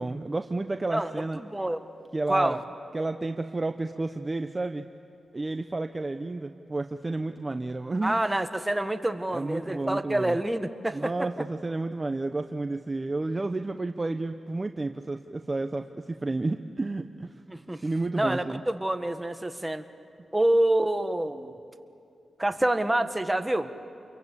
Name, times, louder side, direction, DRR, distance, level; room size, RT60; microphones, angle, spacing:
voice 1, 0.0-1.4 2.1-2.6 2.9-4.8 5.3-8.2 9.3-10.4 10.9-17.3 17.8-18.6, right 2 dB, 30° right, 8 dB, 0.9 m, -31 dB
voice 2, 0.9-1.8 2.3-2.6 8.0-11.3 17.5-17.8 18.1-19.9 20.3-21.5 22.4-23.7, right 1 dB, 15° right, 8 dB, 1.7 m, -27 dB
29.0 x 23.0 x 8.4 m, 2.6 s
cardioid pair, 60°, 0 cm